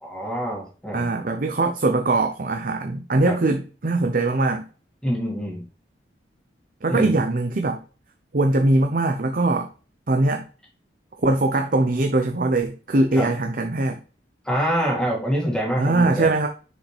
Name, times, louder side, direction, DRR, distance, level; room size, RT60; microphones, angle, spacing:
voice 1, 0.0-1.1 3.3-3.4 5.0-5.6 6.9-7.1 13.1-13.3 14.4-16.3, equal, 5° left, -2 dB, 2.1 m, -25 dB
voice 2, 0.9-4.6 6.8-7.8 8.3-9.7 10.1-10.5 11.2-14.0 15.7-16.5, right 2 dB, 50° right, 5 dB, 0.7 m, -21 dB
6.5 x 5.0 x 3.3 m, 0.36 s
head